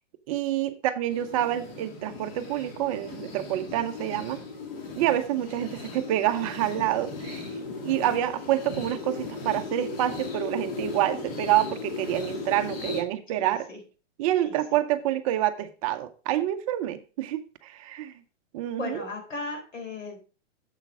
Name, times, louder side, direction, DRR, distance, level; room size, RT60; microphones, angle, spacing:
voice 1, 0.3-4.4 5.0-7.5 7.8-13.7 14.2-18.1 18.5-19.1, right 13 dB, 30° right, 9 dB, 0.5 m, -27 dB
sound 1, 1.1-13.0, left 4 dB, 50° left, 2.5 m, -37 dB
voice 2, 12.6-12.9 13.4-13.8 14.4-14.5 18.8-20.2, left 3 dB, 85° left, 2 dB, 4.0 m, -37 dB
7.5 x 5.8 x 4.8 m, 0.36 s
hypercardioid pair, 135°, 37 cm